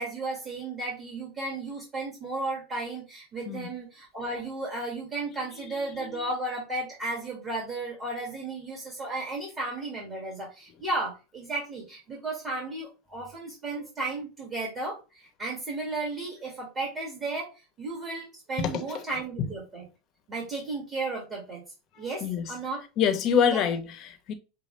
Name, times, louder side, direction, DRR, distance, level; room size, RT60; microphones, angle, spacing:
voice 1, 0.0-17.5 17.8-19.8 20.3-21.6 22.0-22.8 23.5-23.6, right 2 dB, 25° right, 1.9 m, -34 dB
voice 2, 5.6-6.2 18.6-19.0 19.4-19.5 22.2-22.5 23.0-24.3, left 7 dB, 40° left, 1.0 m, -27 dB
6.6 x 2.3 x 3.2 m
supercardioid pair, 135°, 0 cm